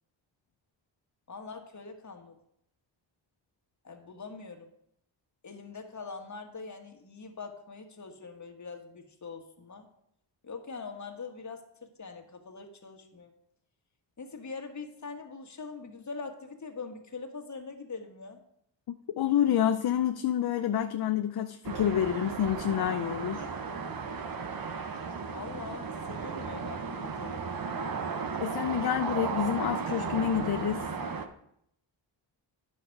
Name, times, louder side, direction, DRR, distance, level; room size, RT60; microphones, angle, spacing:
voice 1, 1.3-2.4 3.8-4.7 5.4-9.9 10.4-13.3 14.2-18.4 25.3-27.5, left 4 dB, 40° left, 4 dB, 1.5 m, -43 dB
voice 2, 19.2-23.5 28.4-30.9, left 10 dB, 55° left, 8 dB, 0.6 m, -28 dB
sound 1, 21.6-31.3, right 5 dB, 50° right, 0.9 m, -35 dB
10.0 x 6.4 x 4.6 m, 0.74 s
cardioid pair, 80°, 45 cm